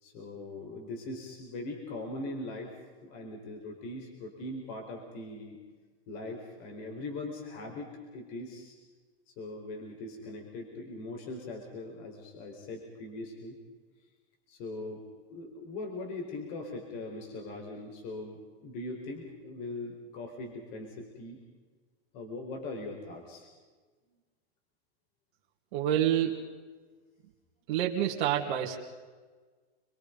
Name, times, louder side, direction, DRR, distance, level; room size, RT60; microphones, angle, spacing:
voice 1, 0.0-5.6 6.1-8.7 9.3-13.6 14.5-21.4 22.1-23.5, left 2 dB, 45° left, 2 dB, 4.5 m, -41 dB
voice 2, 25.7-26.5 27.7-28.8, right 10 dB, 50° right, -3 dB, 2.4 m, -28 dB
29.5 x 22.5 x 5.4 m, 1.4 s
supercardioid pair, 155°, 31 cm